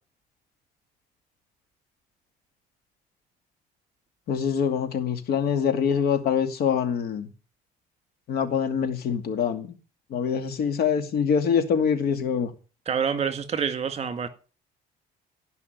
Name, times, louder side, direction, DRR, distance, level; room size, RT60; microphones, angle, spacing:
voice 1, 4.3-7.3 8.3-9.8 10.1-12.5, left 7 dB, 65° left, 2.4 m, -24 dB
voice 2, 12.9-14.3, right 7 dB, 40° right, 2.0 m, -27 dB
16.0 x 5.8 x 9.5 m
cardioid pair, 110°, 17 cm